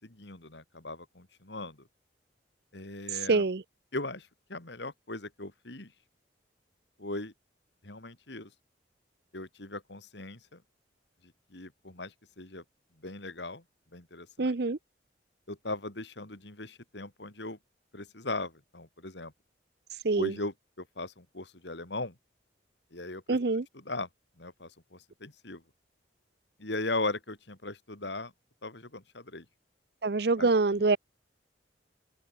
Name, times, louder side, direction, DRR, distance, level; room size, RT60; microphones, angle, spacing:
voice 1, 0.0-1.9 2.7-3.4 3.9-5.9 7.0-7.3 7.8-8.5 9.3-10.6 11.5-12.6 13.0-13.6 13.9-14.5 15.5-17.6 17.9-19.3 20.2-22.1 22.9-23.4 23.7-24.1 24.4-25.6 26.6-28.3 28.6-29.4 30.4-30.8, left 2 dB, 70° left, 3.2 m, -38 dB
voice 2, 3.3-3.6 14.4-14.8 20.0-20.3 23.3-23.7 30.0-31.0, right 3 dB, 55° right, 0.6 m, -25 dB
open air
head